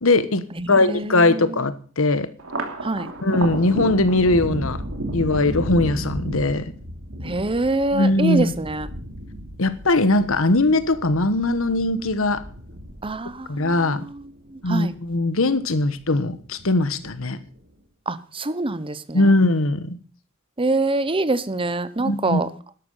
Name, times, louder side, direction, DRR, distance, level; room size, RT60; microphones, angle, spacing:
voice 1, 0.0-2.3 3.2-4.8 5.1-6.7 7.9-8.5 9.6-12.4 13.5-14.1 14.6-17.4 19.1-20.0 22.0-22.4, left 2 dB, 70° left, 1.3 m, -20 dB
voice 2, 0.6-1.6 2.8-3.1 7.2-8.9 13.0-13.7 14.1-14.2 14.5-14.9 18.1-19.2 20.6-22.5, right 2 dB, 25° right, 0.9 m, -25 dB
Thunder, 2.4-15.1 15.4-16.3 16.6-17.4, right 1 dB, 70° right, 3.0 m, -33 dB
13.0 x 11.5 x 5.6 m
head